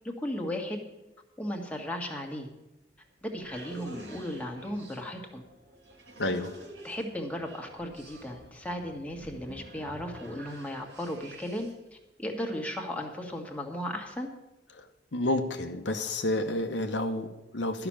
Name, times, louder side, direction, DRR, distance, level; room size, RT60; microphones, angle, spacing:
voice 1, 0.2-0.8 1.4-2.5 3.2-5.4 6.8-14.3, equal, 10° left, 1 dB, 1.5 m, -36 dB
sound 1, 2.8-11.9, right 1 dB, 85° right, 2.9 m, -49 dB
voice 2, 6.2-6.5 14.7-17.9, left 1 dB, 75° left, 5 dB, 1.0 m, -30 dB
12.0 x 6.0 x 8.7 m, 0.97 s
head